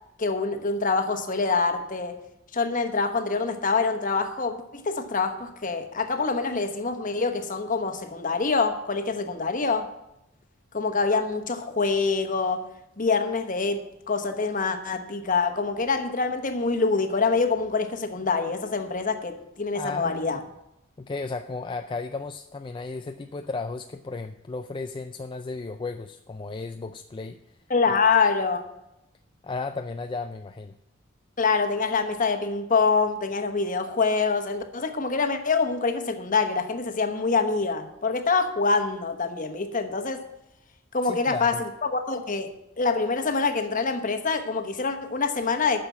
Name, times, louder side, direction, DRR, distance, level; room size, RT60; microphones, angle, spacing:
voice 1, 0.2-2.2 2.5-9.9 10.7-12.6 13.0-20.4 27.7-28.6 31.4-40.2 40.9-42.5 42.8-45.8, left 4 dB, 40° left, 7 dB, 1.2 m, -25 dB
voice 2, 19.7-20.4 21.0-27.6 29.4-30.8 41.0-41.6, left 3 dB, 25° left, 7 dB, 0.4 m, -34 dB
9.4 x 6.8 x 8.4 m, 0.88 s
head